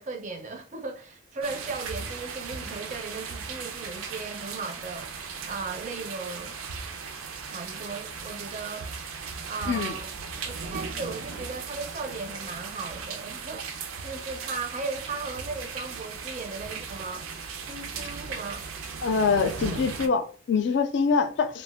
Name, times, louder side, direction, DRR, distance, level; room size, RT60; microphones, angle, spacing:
voice 1, 0.0-5.1 5.5-6.6 7.3-8.9 9.4-10.1 10.4-17.3 17.7-18.7, right 4 dB, 35° right, 0.4 m, -37 dB
sound 1, 1.4-20.1, right 5 dB, 90° right, 0.5 m, -37 dB
voice 2, 19.0-21.6, left 5 dB, 55° left, 0.3 m, -24 dB
2.4 x 2.1 x 3.4 m
head